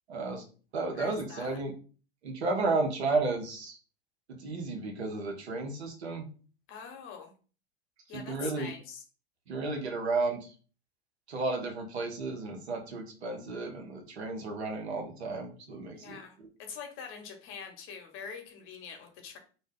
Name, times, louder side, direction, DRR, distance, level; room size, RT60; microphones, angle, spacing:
voice 1, 0.1-0.4 0.7-1.7 2.2-3.8 4.3-6.3 8.1-8.7 9.5-10.5 11.3-16.2, right 3 dB, 85° right, 3 dB, 0.9 m, -33 dB
voice 2, 0.9-1.6 6.7-7.3 8.1-9.0 15.9-19.4, left 6 dB, 40° left, 4 dB, 0.9 m, -44 dB
2.6 x 2.2 x 3.5 m, 0.38 s
hypercardioid pair, 100°, 32 cm